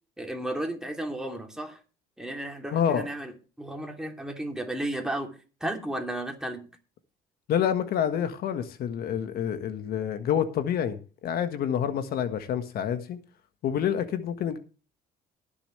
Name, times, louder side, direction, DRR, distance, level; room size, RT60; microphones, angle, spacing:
voice 1, 0.2-1.8 2.2-3.3 3.6-5.3 5.6-6.7, right 1 dB, 5° right, 2.8 m, -33 dB
voice 2, 2.7-3.1 7.5-13.2 13.6-14.6, left 9 dB, 65° left, 1.5 m, -28 dB
21.5 x 7.1 x 3.2 m
cardioid pair, 110°, 17 cm